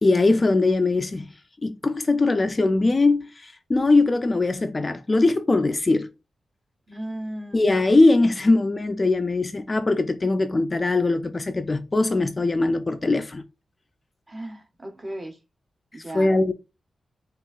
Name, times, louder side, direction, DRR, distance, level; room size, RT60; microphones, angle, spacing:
voice 1, 0.0-6.1 7.5-13.4 16.1-16.5, left 2 dB, 25° left, 0.3 m, -21 dB
voice 2, 6.9-7.7 14.3-15.4 15.9-16.3, right 1 dB, 25° right, 0.8 m, -35 dB
6.0 x 2.4 x 2.4 m
wide cardioid pair, 120°, 0 cm